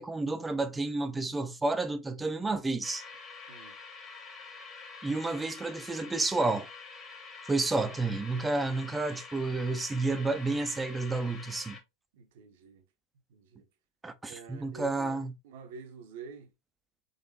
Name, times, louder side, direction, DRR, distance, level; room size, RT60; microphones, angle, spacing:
voice 1, 0.0-3.0 5.0-6.7 7.5-11.8 14.0-15.3, right 3 dB, 10° right, 0.5 m, -30 dB
sound 1, 2.8-11.8, left 4 dB, 25° left, 1.1 m, -47 dB
voice 2, 12.1-12.8 13.3-13.7 14.3-16.5, right 5 dB, 50° right, 0.8 m, -47 dB
4.0 x 3.0 x 2.8 m
figure-of-eight pair, 90°, 0 cm